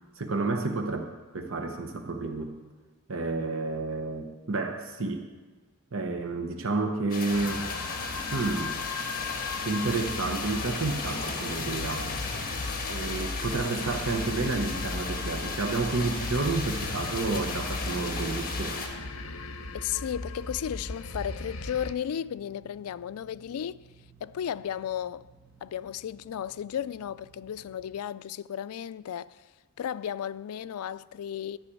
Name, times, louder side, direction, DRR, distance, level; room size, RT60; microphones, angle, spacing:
voice 1, 0.2-1.1 1.3-2.5 3.1-5.3 5.9-7.7 8.3-8.8 9.6-12.1 12.9-18.8, right 3 dB, 60° right, 1.0 m, -30 dB
sound 1, 7.1-18.9, left 4 dB, 40° left, 1.6 m, -35 dB
sound 2, 7.3-21.9, left 3 dB, 65° left, 0.9 m, -37 dB
sound 3, 8.3-28.0, right 6 dB, 10° right, 1.3 m, -57 dB
voice 2, 19.7-23.8 24.2-25.3 25.6-29.4 29.8-31.6, left 9 dB, 85° left, 0.3 m, -34 dB
13.0 x 6.1 x 8.4 m
head